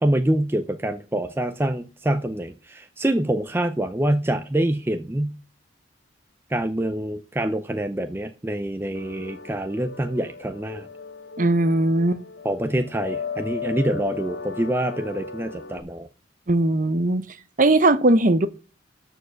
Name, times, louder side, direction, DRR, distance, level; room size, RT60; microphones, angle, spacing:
voice 1, 0.0-5.4 6.5-10.9 12.4-16.1, right 1 dB, 10° right, 0.5 m, -25 dB
sound 1, 8.9-15.8, left 5 dB, 60° left, 0.9 m, -36 dB
voice 2, 11.4-12.2 16.5-17.2 17.6-18.5, right 2 dB, 45° right, 0.8 m, -19 dB
13.0 x 4.7 x 6.4 m
head